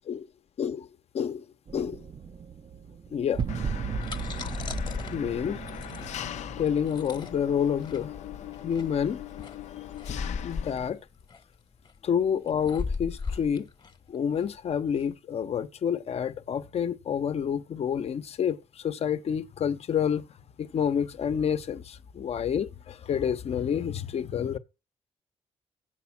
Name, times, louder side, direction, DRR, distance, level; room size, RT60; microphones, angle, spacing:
voice 1, 0.6-0.9 1.1-1.4 1.7-2.0 3.1-3.4 5.1-6.1 6.6-8.1 8.6-9.2 10.1-11.0 12.0-13.7 14.1-20.2 20.6-24.6, left 8 dB, 60° left, 0.9 m, -29 dB
sound 1, 1.7-8.5, right 6 dB, 45° right, 0.6 m, -37 dB
Engine, 3.5-10.9, left 11 dB, 75° left, 0.6 m, -40 dB
sound 2, 3.9-15.1, left 4 dB, 40° left, 1.2 m, -37 dB
8.0 x 5.9 x 5.8 m
cardioid pair, 70°, 12 cm